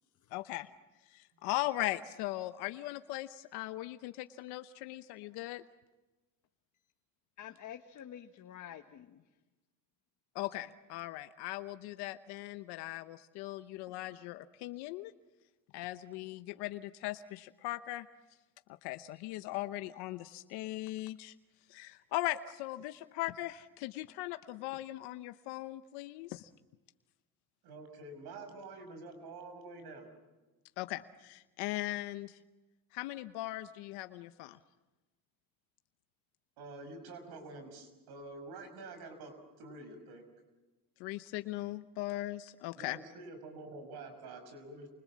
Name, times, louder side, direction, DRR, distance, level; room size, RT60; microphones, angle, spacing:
voice 1, 0.3-0.7 1.1-5.6 10.3-15.1 15.7-18.1 18.8-21.3 21.7-26.5 30.8-32.4 32.9-34.6 41.0-43.0, left 17 dB, 90° left, 10 dB, 0.9 m, -39 dB
voice 2, 7.4-9.3, left 10 dB, 50° left, 6 dB, 1.4 m, -48 dB
voice 3, 27.6-30.1 36.6-40.2 42.8-44.9, right 2 dB, 75° right, 8 dB, 6.2 m, -47 dB
29.0 x 24.5 x 7.4 m, 1.1 s
cardioid pair, 105°, 38 cm